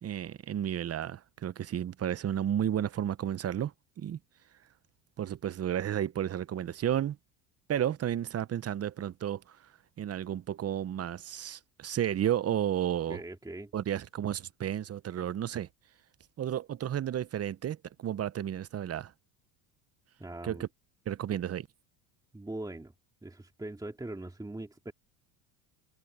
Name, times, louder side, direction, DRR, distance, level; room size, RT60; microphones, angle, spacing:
voice 1, 0.0-3.7 4.0-4.2 5.2-7.2 7.7-9.6 10.0-13.2 13.7-15.7 16.4-19.1 20.4-20.7 21.1-21.7, right 10 dB, 30° right, 0.9 m, -32 dB
voice 2, 13.1-13.7 20.2-20.7 22.3-22.9 23.2-24.9, right 2 dB, 10° right, 2.5 m, -41 dB
supercardioid pair, 95°, 46 cm